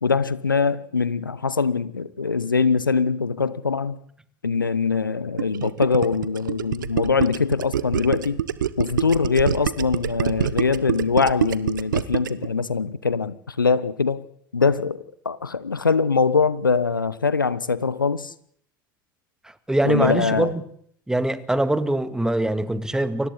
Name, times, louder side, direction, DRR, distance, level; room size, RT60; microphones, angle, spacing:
voice 1, 0.0-4.0 4.4-8.4 8.8-14.2 14.5-18.3 19.8-20.5, left 5 dB, 85° left, 1.0 m, -22 dB
Gurgling, 5.4-12.5, right 10 dB, 70° right, 0.9 m, -25 dB
voice 2, 19.7-20.6 21.1-23.3, right 1 dB, 5° right, 1.8 m, -23 dB
30.0 x 24.5 x 4.2 m
figure-of-eight pair, 80°, 11 cm